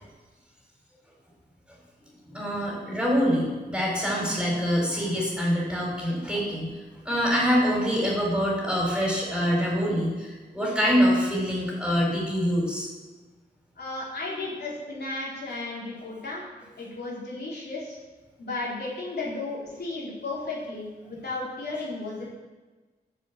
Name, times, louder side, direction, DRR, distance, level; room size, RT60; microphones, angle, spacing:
voice 1, 2.3-6.8 7.0-12.9, equal, 5° right, -3 dB, 4.5 m, -25 dB
voice 2, 13.8-16.4 16.8-18.0 18.4-22.3, left 2 dB, 75° left, -5 dB, 4.0 m, -34 dB
13.0 x 7.6 x 7.4 m, 1.3 s
wide cardioid pair, 125°, 17 cm